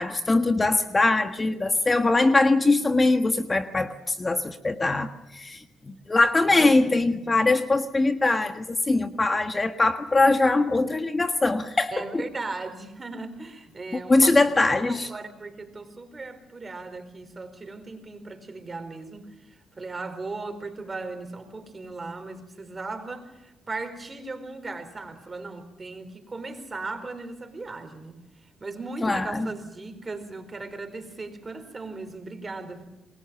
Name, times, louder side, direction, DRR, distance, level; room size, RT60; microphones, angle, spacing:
voice 1, 0.0-12.2 13.9-15.1 29.0-29.5, left 2 dB, 30° left, 7 dB, 1.5 m, -22 dB
voice 2, 6.4-7.3 11.9-14.4 14.8-28.2 28.6-32.8, right 3 dB, 30° right, 8 dB, 4.6 m, -37 dB
28.0 x 21.5 x 7.1 m, 0.95 s
supercardioid pair, 60°, 0 cm